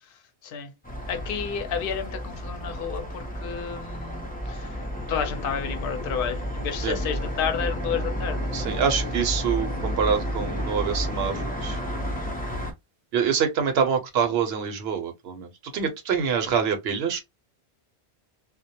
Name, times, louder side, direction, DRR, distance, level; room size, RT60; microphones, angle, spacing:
sound 1, 0.8-12.7, equal, 10° left, 0.4 m, -31 dB
voice 1, 1.1-4.2 4.5-4.7 5.1-8.8, left 7 dB, 60° left, 0.7 m, -31 dB
voice 2, 8.5-11.3 11.6-11.8 13.1-17.2, right 7 dB, 70° right, 0.9 m, -25 dB
2.2 x 2.1 x 2.7 m
omnidirectional pair, 1.2 m